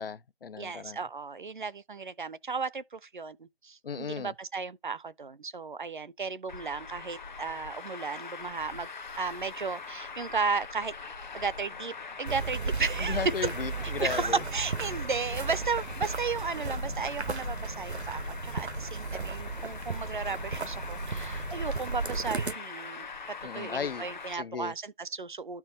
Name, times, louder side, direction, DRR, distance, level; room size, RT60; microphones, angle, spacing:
voice 1, 0.0-1.0 3.8-4.3 13.0-14.4 23.4-24.1 24.3-24.7, left 6 dB, 60° left, 0.5 m, -35 dB
voice 2, 0.6-8.9 9.2-10.9 11.3-13.3 13.8-23.1 23.5-25.6, right 4 dB, 50° right, 0.6 m, -34 dB
Traffic noise roadway noise, 6.5-24.3, left 4 dB, 45° left, 0.9 m, -42 dB
sound 1, 12.3-22.5, right 4 dB, 85° right, 1.0 m, -35 dB
12.5 x 4.5 x 2.8 m
figure-of-eight pair, 155°, 32 cm